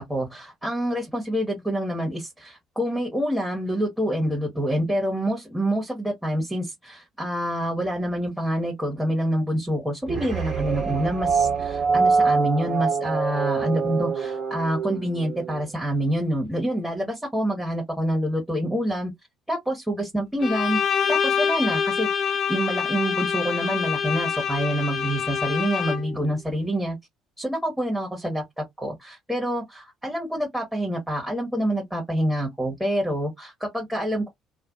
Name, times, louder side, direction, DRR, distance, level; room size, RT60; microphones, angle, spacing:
voice 1, 0.0-19.1 19.5-20.8 21.1-27.0 27.4-34.3, equal, 5° right, 1.2 m, -27 dB
sound 1, 10.0-15.6, right 5 dB, 45° right, 1.3 m, -25 dB
Bowed string instrument, 20.4-26.2, left 7 dB, 40° left, 0.6 m, -26 dB
2.4 x 2.2 x 2.4 m
figure-of-eight pair, 50°, 0 cm